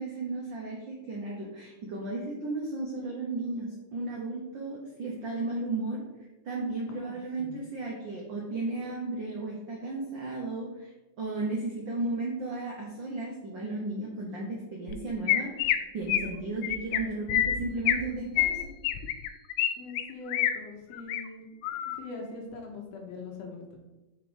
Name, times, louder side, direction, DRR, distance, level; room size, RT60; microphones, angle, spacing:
voice 1, 0.0-6.0 6.4-10.9 11.2-18.7, right 2 dB, 75° right, -2 dB, 1.0 m, -34 dB
voice 2, 6.9-7.6 11.3-11.4 19.8-21.5 21.8-23.8, left 3 dB, 65° left, 1 dB, 1.8 m, -42 dB
Chirp tweet, 14.9-15.0 15.3-15.8 16.1-16.3 16.6-17.0 17.3-18.0 18.4-19.7 20.0-20.5 20.9-21.2 21.6-22.0, left 12 dB, 85° left, 2.0 m, -26 dB
4.9 x 4.3 x 5.1 m, 1.1 s
omnidirectional pair, 3.5 m